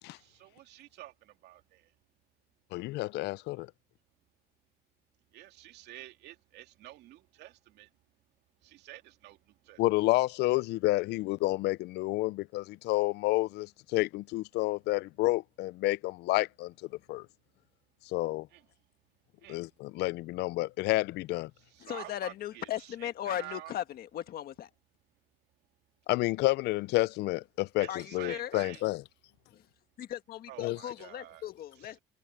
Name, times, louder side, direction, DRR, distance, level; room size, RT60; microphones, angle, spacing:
voice 1, 0.1-1.9 5.3-7.9 8.6-9.8 18.5-18.7 19.4-19.7 21.6-23.8 27.8-28.8 30.5-31.5 31.7-32.0, right 15 dB, 80° right, 2.6 m, -49 dB
voice 2, 2.7-3.7 9.8-16.7 17.1-17.3 18.1-18.5 19.5-21.5 26.1-29.0 30.6-30.8, left 19 dB, 80° left, 0.5 m, -30 dB
voice 3, 21.8-24.7 27.9-28.6 29.5-29.6 30.0-32.0, left 11 dB, 65° left, 1.7 m, -37 dB
cardioid pair, 110°, 17 cm